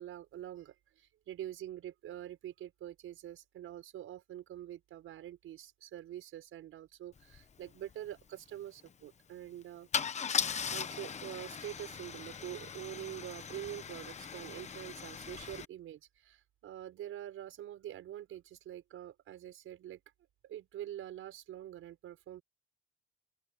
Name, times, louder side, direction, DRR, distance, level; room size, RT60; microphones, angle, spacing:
voice 1, 0.0-9.9 10.7-20.0 20.4-22.4, right 12 dB, 85° right, 6.3 m, -45 dB
Car / Engine starting / Idling, 7.3-7.4 7.7-7.9 9.9-15.6, left 6 dB, 35° left, 1.0 m, -38 dB
open air
cardioid pair, 160°, 21 cm